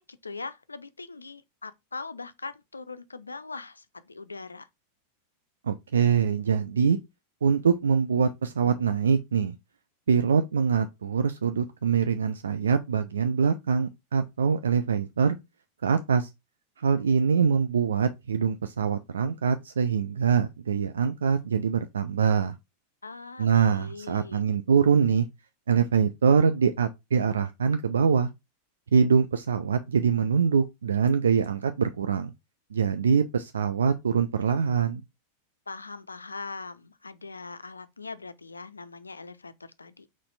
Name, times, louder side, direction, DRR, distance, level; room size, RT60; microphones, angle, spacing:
voice 1, 0.0-4.7 23.0-24.4 35.7-40.1, left 4 dB, 80° left, 0.4 m, -41 dB
voice 2, 5.6-7.0 7.4-9.5 10.1-15.4 15.8-16.3 16.8-22.5 23.4-25.3 25.7-28.3 28.9-32.3 32.7-35.0, right 6 dB, 70° right, 0.3 m, -24 dB
4.1 x 3.1 x 3.9 m
figure-of-eight pair, 90°, 0 cm